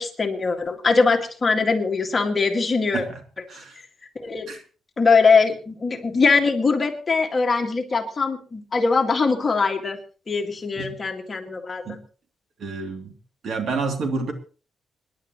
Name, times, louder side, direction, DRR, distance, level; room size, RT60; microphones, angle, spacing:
voice 1, 0.0-3.0 4.2-4.5 5.0-10.0 10.3-11.8, left 4 dB, 30° left, 3 dB, 2.0 m, -21 dB
voice 2, 12.6-13.1 13.4-14.3, right 4 dB, 60° right, 4 dB, 2.9 m, -29 dB
26.5 x 11.0 x 3.1 m, 0.38 s
cardioid pair, 130°, 0 cm